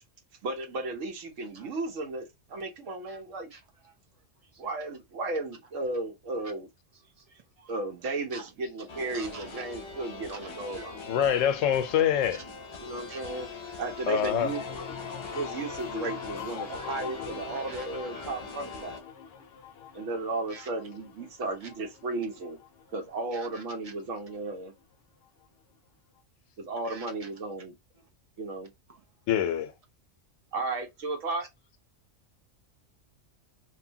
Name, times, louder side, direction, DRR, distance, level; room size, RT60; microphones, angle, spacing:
voice 1, 0.4-3.5 4.6-6.7 7.7-11.0 12.8-13.5 13.8-14.9 15.3-19.0 19.9-22.6 22.9-24.7 26.6-27.8 28.4-28.7 30.5-31.5, right 2 dB, 80° right, 1.3 m, -34 dB
voice 2, 7.3-7.7 8.3-8.4 9.1-9.6 10.4-10.8 13.1-13.2 15.1-15.2 17.5-17.9 18.1-18.3 20.5-20.7 23.3-23.9 26.9-27.1, right 4 dB, 40° right, 0.6 m, -47 dB
sound 1, 8.9-19.0, left 4 dB, 40° left, 0.4 m, -42 dB
voice 3, 11.0-12.4 14.1-14.5 29.3-29.7, left 9 dB, 85° left, 1.0 m, -25 dB
sound 2, 14.3-23.9 24.3-24.8, left 8 dB, 60° left, 0.8 m, -43 dB
3.0 x 2.2 x 2.7 m
omnidirectional pair, 1.3 m